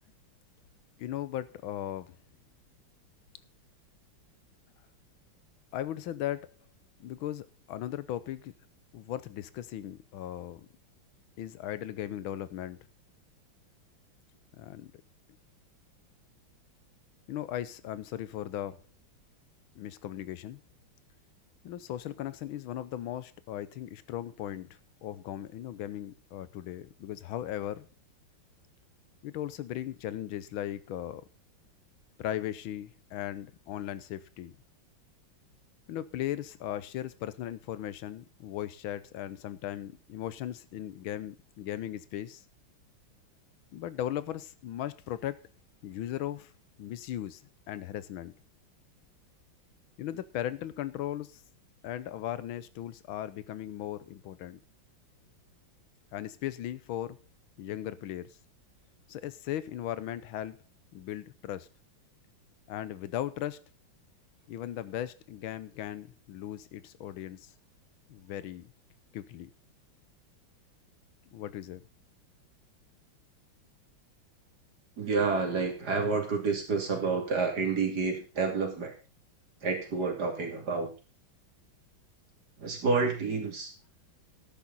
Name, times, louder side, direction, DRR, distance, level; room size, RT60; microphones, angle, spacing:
voice 1, 1.0-2.2 5.7-6.5 7.0-8.5 8.9-10.7 11.4-12.8 14.6-14.9 17.3-18.8 19.7-20.6 21.6-27.9 29.2-31.2 32.2-34.5 35.9-42.4 43.7-45.4 45.8-46.5 46.8-47.4 47.7-48.3 50.0-51.4 51.8-54.6 56.1-57.2 57.6-58.4 59.1-60.6 60.9-61.7 62.7-63.6 64.5-67.5 68.1-68.7 69.1-69.5 71.3-71.8, left 12 dB, 85° left, 1.6 m, -37 dB
voice 2, 75.0-78.9 79.6-80.9 82.6-83.7, right 4 dB, 50° right, 3.4 m, -29 dB
12.5 x 10.0 x 4.1 m
omnidirectional pair, 2.2 m